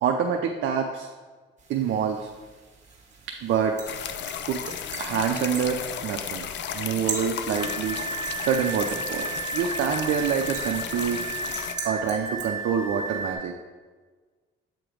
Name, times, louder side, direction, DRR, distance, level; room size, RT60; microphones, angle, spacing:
voice 1, 0.0-1.1 1.7-2.3 3.4-3.8 4.5-4.6 5.0-6.5 6.7-8.0 8.4-9.3 9.5-11.2 11.8-13.5, right 7 dB, 75° right, 3 dB, 0.5 m, -26 dB
sound 1, 1.6-13.3, right 4 dB, 40° right, 1.7 m, -42 dB
sound 2, 3.9-11.7, left 8 dB, 65° left, 0.5 m, -34 dB
sound 3, 7.5-13.4, right 4 dB, 10° left, 1.9 m, -33 dB
7.7 x 3.0 x 5.0 m, 1.4 s
cardioid pair, 90°, 20 cm